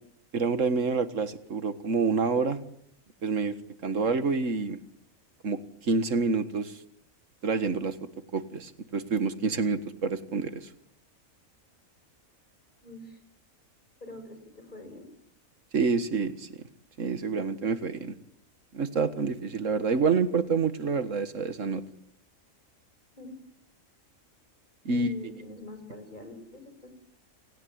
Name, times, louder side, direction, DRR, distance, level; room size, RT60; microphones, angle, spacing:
voice 1, 0.3-2.6 3.2-3.6 3.8-4.8 5.4-6.8 7.4-8.0 8.3-10.7 15.7-16.5 17.0-18.2 18.7-21.8 24.9-25.1, right 4 dB, 65° right, 12 dB, 2.0 m, -27 dB
voice 2, 12.8-13.2 14.0-15.1 23.2-23.3 24.9-26.9, left 1 dB, 35° left, 8 dB, 5.8 m, -44 dB
29.0 x 17.5 x 9.6 m, 0.72 s
omnidirectional pair, 1.4 m